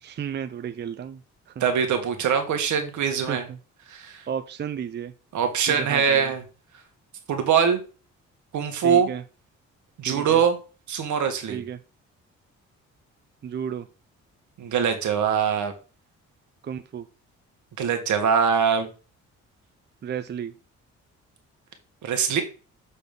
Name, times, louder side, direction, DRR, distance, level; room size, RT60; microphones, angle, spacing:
voice 1, 0.0-1.2 1.5-1.6 2.2-2.3 3.2-3.6 4.3-5.1 5.7-6.3 8.8-9.2 10.1-10.4 11.5-11.8 13.4-13.9 16.6-17.1 20.0-20.6, right 8 dB, 35° right, 10 dB, 0.5 m, -33 dB
voice 2, 1.6-3.4 3.9-4.2 5.3-6.4 7.3-7.8 8.5-9.1 10.0-10.6 10.9-11.6 14.6-15.7 17.8-18.9 22.0-22.4, right 7 dB, 75° right, 6 dB, 1.7 m, -22 dB
6.9 x 4.2 x 5.3 m, 0.35 s
cardioid pair, 90°, 30 cm